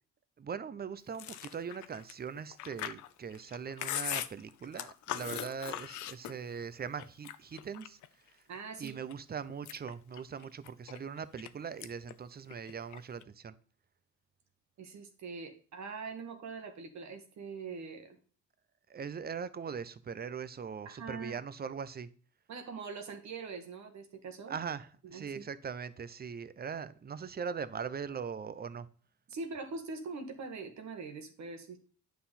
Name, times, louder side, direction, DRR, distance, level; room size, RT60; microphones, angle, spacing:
voice 1, 0.4-8.0 8.3-8.4 8.8-13.5 18.9-22.1 24.5-28.9, right 6 dB, 30° right, 0.7 m, -41 dB
Chewing mastication, 1.1-6.6 7.0-8.1 8.5-9.1 9.5-11.5 11.8-12.1 12.4-13.2, left 12 dB, 75° left, 0.7 m, -40 dB
voice 2, 8.5-9.0 14.8-18.2 20.9-21.4 22.5-24.6 25.0-25.4 29.3-31.8, right 4 dB, 65° right, 1.8 m, -43 dB
9.3 x 5.8 x 4.2 m
cardioid pair, 90°, 30 cm